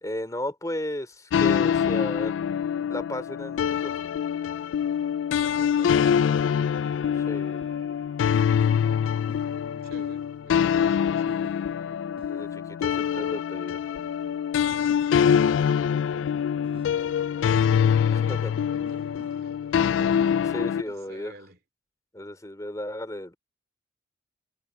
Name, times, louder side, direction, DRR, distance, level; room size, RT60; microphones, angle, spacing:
voice 1, 0.0-2.3 2.9-4.0 7.1-7.6 12.3-13.8 18.1-18.5 20.5-21.3 22.1-23.4, left 1 dB, 15° left, 3.1 m, -34 dB
sound 1, 1.3-20.8, left 8 dB, 80° left, 0.3 m, -24 dB
voice 2, 5.5-6.6 9.5-11.5 15.4-16.4 17.9-21.6, right 1 dB, 50° right, 2.9 m, -50 dB
sound 2, 5.6-20.1, right 1 dB, 30° right, 4.0 m, -55 dB
head